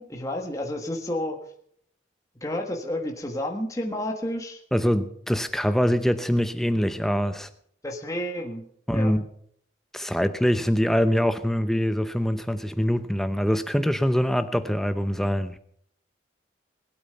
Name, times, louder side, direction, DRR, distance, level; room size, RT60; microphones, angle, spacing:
voice 1, 0.0-1.4 2.4-4.6 7.8-8.7 8.9-9.1, left 1 dB, 15° left, 1.5 m, -30 dB
voice 2, 4.7-7.5 8.9-9.2 9.9-15.6, equal, ahead, 0.7 m, -24 dB
20.0 x 8.7 x 5.7 m
head